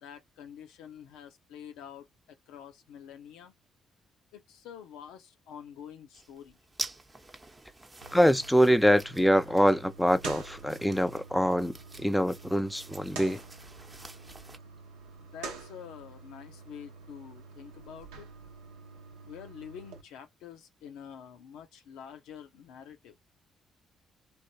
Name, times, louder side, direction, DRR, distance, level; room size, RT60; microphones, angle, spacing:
voice 1, 0.0-3.5 4.3-6.6 15.2-18.3 19.3-23.2, left 8 dB, 75° left, 0.6 m, -47 dB
sound 1, 6.1-14.6, right 2 dB, 25° right, 0.8 m, -46 dB
sound 2, 8.0-20.0, right 5 dB, 80° right, 0.7 m, -47 dB
voice 2, 8.1-13.4, equal, 5° left, 0.4 m, -24 dB
3.3 x 2.5 x 2.7 m
hypercardioid pair, 40°, 0 cm